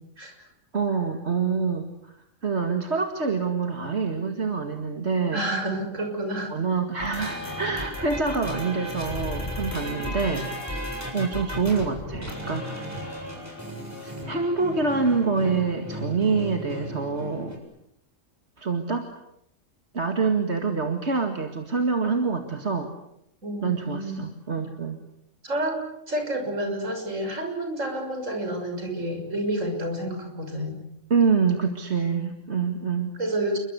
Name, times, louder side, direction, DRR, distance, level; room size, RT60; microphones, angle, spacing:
voice 1, 0.7-2.1 2.4-5.4 6.5-10.7 11.1-13.2 14.0-17.5 18.6-19.1 19.9-22.9 23.6-25.0 31.1-33.1, right 4 dB, 55° right, 5 dB, 2.4 m, -26 dB
voice 2, 5.3-6.5 23.4-24.2 25.4-25.8 26.1-30.8 33.2-33.6, right 1 dB, 70° right, 4 dB, 6.8 m, -29 dB
sound 1, 7.0-17.6, equal, 10° right, 7.2 m, -34 dB
29.0 x 23.5 x 8.3 m, 0.78 s
omnidirectional pair, 1.4 m